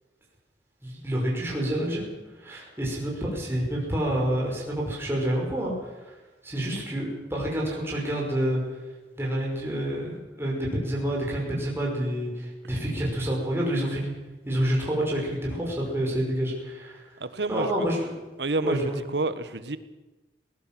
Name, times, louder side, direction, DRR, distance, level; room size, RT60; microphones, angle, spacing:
voice 1, 0.8-2.1 2.4-6.1 6.4-8.6 9.1-14.1 14.5-17.0 17.5-18.2 18.6-19.0, right 1 dB, 15° right, -3 dB, 5.7 m, -28 dB
voice 2, 17.2-17.7 18.4-18.8 19.1-19.8, right 3 dB, 80° right, 12 dB, 1.4 m, -28 dB
19.5 x 19.0 x 7.6 m, 1.1 s
head